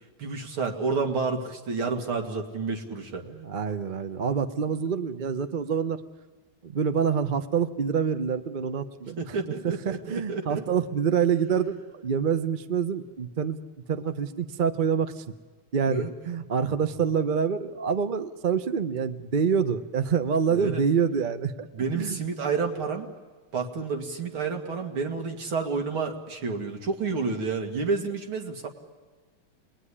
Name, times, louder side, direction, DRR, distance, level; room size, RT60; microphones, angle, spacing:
voice 1, 0.2-3.2 9.2-10.6 15.8-16.1 20.5-20.8 21.7-23.1 23.5-28.7, right 4 dB, 80° right, 3 dB, 3.1 m, -30 dB
voice 2, 3.2-6.0 6.6-9.4 9.6-13.6 13.9-15.2 15.7-21.7 22.0-22.2, right 7 dB, 40° right, 10 dB, 0.7 m, -26 dB
28.5 x 21.0 x 10.0 m, 1.3 s
omnidirectional pair, 2.3 m